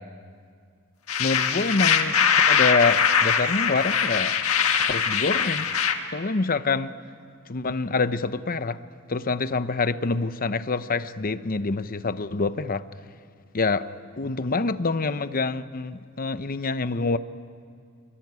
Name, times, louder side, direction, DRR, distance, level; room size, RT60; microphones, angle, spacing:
sound 1, 1.1-5.9, left 7 dB, 75° left, 1.6 m, -22 dB
voice 1, 1.2-4.4 4.8-5.7 6.1-6.9 7.5-8.8 9.1-12.8 13.5-13.9 14.2-17.2, left 3 dB, 40° left, 0.8 m, -26 dB
25.0 x 23.5 x 9.6 m
head